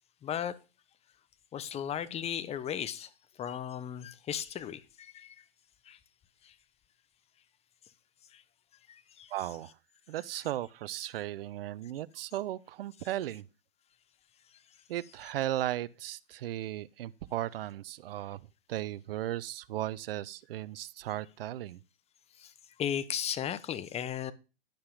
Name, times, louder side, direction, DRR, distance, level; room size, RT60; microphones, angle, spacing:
voice 1, 0.2-0.5 1.5-3.1 3.4-5.5 5.9-6.0 6.4-6.5 8.3-8.4 8.9-9.3 22.4-22.5 22.8-24.3, left 9 dB, 20° left, 1.0 m, -36 dB
voice 2, 9.3-9.7 10.1-13.5 14.9-18.4 18.7-21.8, right 13 dB, 65° right, 0.8 m, -36 dB
12.0 x 5.6 x 5.3 m
hypercardioid pair, 120°, 31 cm